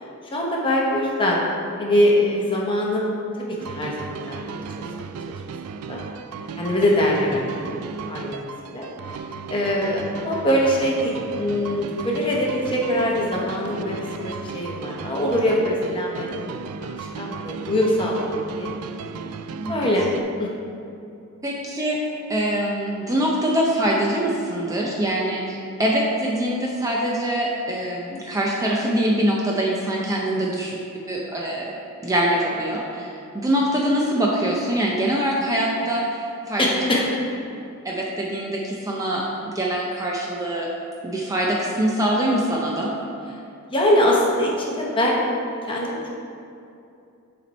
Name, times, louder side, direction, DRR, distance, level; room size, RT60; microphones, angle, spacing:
voice 1, 0.3-1.4 1.8-3.1 3.5-4.5 5.9-6.0 6.5-8.9 9.5-14.0 14.2-16.5 17.0-18.7 19.6-20.1 20.4-20.5 30.3-30.4 36.6-37.1 43.7-45.2 45.6-46.0, left 1 dB, 25° left, -3 dB, 1.0 m, -23 dB
sound 1, 3.6-20.2, right 5 dB, 85° right, 0.3 m, -35 dB
voice 2, 21.4-22.0 22.3-30.8 31.1-31.7 32.0-37.0 37.8-39.2 39.5-40.7 41.0-42.9, right 1 dB, 15° right, -3 dB, 0.5 m, -24 dB
7.3 x 4.4 x 4.2 m, 2.6 s
head